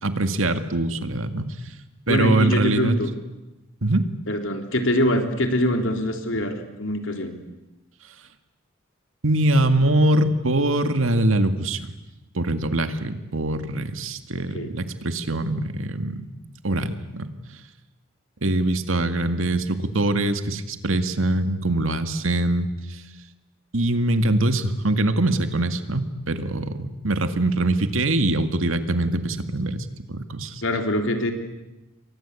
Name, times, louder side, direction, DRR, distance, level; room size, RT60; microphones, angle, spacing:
voice 1, 0.0-1.6 2.1-3.0 3.8-4.1 9.2-11.9 12.3-16.2 16.6-17.3 18.4-23.0 23.7-30.6, right 1 dB, 75° right, 9 dB, 2.0 m, -23 dB
voice 2, 2.1-3.1 4.3-7.4 14.5-14.7 30.6-31.3, equal, 65° left, 5 dB, 3.7 m, -23 dB
29.5 x 23.5 x 8.5 m, 0.99 s
head